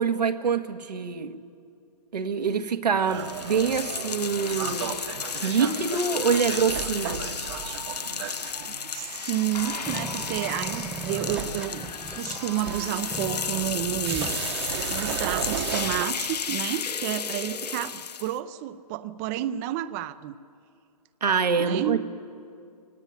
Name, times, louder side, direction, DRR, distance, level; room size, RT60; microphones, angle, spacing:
voice 1, 0.0-1.4 2.1-5.0 5.4-7.2 21.2-22.0, right 6 dB, 90° right, 6 dB, 1.7 m, -25 dB
sound 1, 2.9-16.1, right 10 dB, 40° right, 1.0 m, -36 dB
sound 2, 3.1-18.4, left 7 dB, 90° left, 1.0 m, -33 dB
voice 2, 8.7-11.9 12.2-14.5 14.9-20.3 21.6-22.0, right 13 dB, 25° right, 13 dB, 0.5 m, -31 dB
sound 3, 9.9-12.4 13.1-17.9, right 2 dB, 5° right, 1.1 m, -39 dB
23.5 x 18.0 x 9.8 m, 2.4 s
hypercardioid pair, 150°, 20 cm